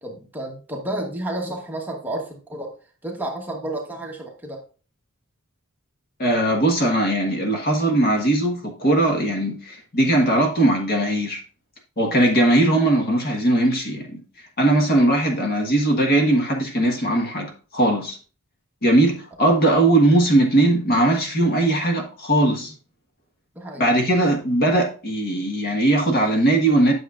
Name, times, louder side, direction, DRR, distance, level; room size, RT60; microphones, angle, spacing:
voice 1, 0.0-2.7 3.0-4.6 19.4-19.5 23.5-23.9, right 1 dB, 10° right, 1.2 m, -31 dB
voice 2, 6.2-11.4 12.0-14.2 14.6-18.2 18.8-22.7 23.8-26.9, right 1 dB, 45° left, 1.4 m, -19 dB
9.3 x 6.4 x 2.5 m
head